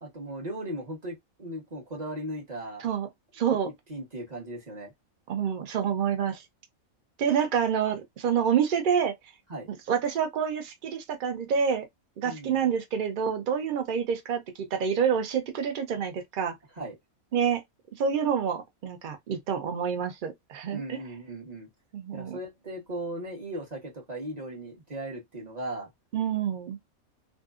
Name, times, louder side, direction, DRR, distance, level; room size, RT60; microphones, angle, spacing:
voice 1, 0.0-2.8 3.5-4.9 9.5-9.7 12.2-12.6 16.8-16.9 20.7-21.7 22.1-25.9, right 1 dB, 35° right, 1.0 m, -37 dB
voice 2, 3.3-3.7 5.3-6.4 7.2-9.1 9.7-11.9 12.2-16.5 17.3-17.6 18.0-21.0 21.9-22.4 26.1-26.8, right 7 dB, 55° right, 0.6 m, -27 dB
2.7 x 2.2 x 2.3 m
omnidirectional pair, 1.4 m